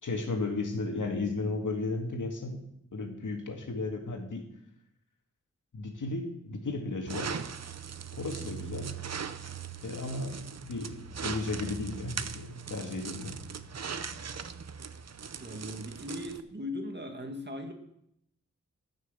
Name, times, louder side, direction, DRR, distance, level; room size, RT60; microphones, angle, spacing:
voice 1, 0.0-2.6 2.9-4.5 5.7-7.4 8.1-8.9 9.8-13.4, left 3 dB, 75° left, 3 dB, 2.2 m, -34 dB
sound 1, 7.1-16.4, right 6 dB, 55° right, 0.7 m, -40 dB
voice 2, 15.4-17.7, left 1 dB, 35° right, 4 dB, 1.9 m, -38 dB
14.0 x 6.2 x 7.5 m, 0.78 s
wide cardioid pair, 90°, 31 cm